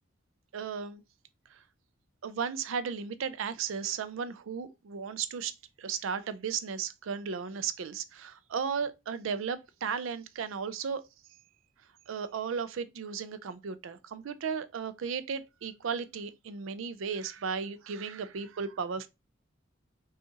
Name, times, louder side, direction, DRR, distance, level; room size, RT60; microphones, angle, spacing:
voice 1, 0.5-1.0 1.5-1.6 2.2-5.5 5.8-11.0 12.1-19.1, right 6 dB, 75° right, 0.4 m, -35 dB
5.4 x 2.4 x 2.8 m
head